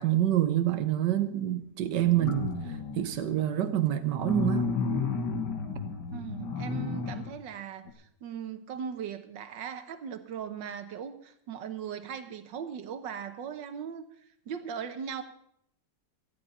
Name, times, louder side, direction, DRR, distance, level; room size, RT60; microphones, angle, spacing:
voice 1, 0.0-2.5 3.0-4.7, right 12 dB, 75° right, 1.5 m, -26 dB
sound 1, 2.0-3.2 4.1-7.3 7.9-8.0, left 4 dB, 70° left, 2.2 m, -32 dB
voice 2, 6.1-14.0 14.5-15.2, right 7 dB, 90° right, 1.7 m, -39 dB
18.0 x 13.5 x 4.2 m
omnidirectional pair, 1.9 m